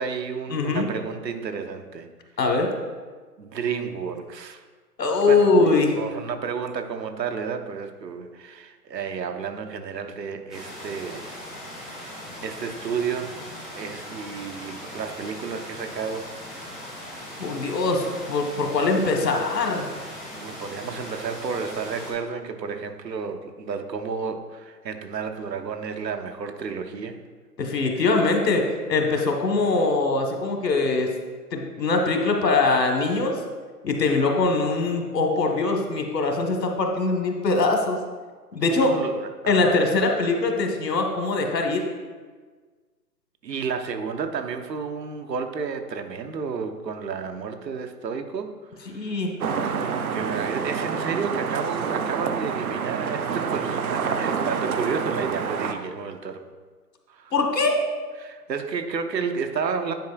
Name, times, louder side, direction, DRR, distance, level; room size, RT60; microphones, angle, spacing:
voice 1, 0.0-2.1 3.4-4.6 5.3-5.5 6.0-11.3 11.7-13.3 13.8-16.3 20.3-27.2 38.7-39.8 43.4-49.2 49.6-56.5 57.1-57.3 58.2-59.9, right 6 dB, 90° right, 6 dB, 0.8 m, -31 dB
voice 2, 0.5-0.9 2.4-2.7 5.0-6.0 17.4-19.9 27.6-31.1 31.5-33.4 33.8-38.0 38.5-38.9 39.5-41.9 48.9-49.3 57.3-57.7, left 3 dB, 80° left, 3 dB, 1.2 m, -22 dB
sound 1, 10.5-22.1, left 1 dB, ahead, 0.4 m, -39 dB
sound 2, 49.4-55.7, right 6 dB, 60° right, 0.6 m, -27 dB
9.2 x 4.8 x 2.3 m, 1.5 s
hypercardioid pair, 160°, 48 cm